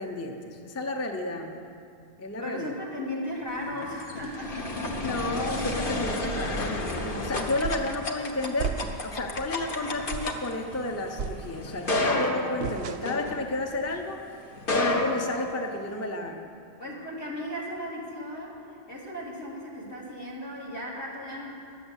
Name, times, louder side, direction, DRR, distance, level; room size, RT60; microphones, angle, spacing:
voice 1, 0.0-1.7 2.2-2.7 5.0-14.2 14.7-16.5, left 2 dB, 15° left, 4 dB, 0.6 m, -32 dB
voice 2, 2.4-5.4 16.8-18.6 18.9-21.8, left 1 dB, 70° left, -7 dB, 3.7 m, -36 dB
sound 1, 3.6-13.9 14.5-16.0, left 2 dB, 55° left, 1.2 m, -31 dB
sound 2, 7.6-8.0 8.6-9.2 9.6-9.7 10.1-10.5 11.2-11.9 12.6-13.3, right 6 dB, 90° right, 0.9 m, -34 dB
12.5 x 7.9 x 8.1 m, 2.5 s
omnidirectional pair, 1.1 m